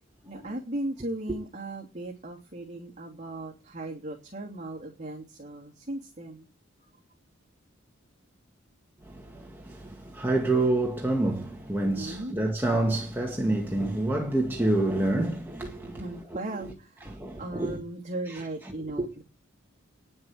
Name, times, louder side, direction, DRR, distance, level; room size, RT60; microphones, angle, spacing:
voice 1, 0.3-6.5 11.8-12.4 15.9-17.1 17.4-19.2, right 1 dB, 35° right, 3.0 m, -37 dB
voice 2, 9.1-16.0 17.1-17.8 19.0-19.1, right 2 dB, 10° right, 1.8 m, -27 dB
10.5 x 7.5 x 9.5 m
head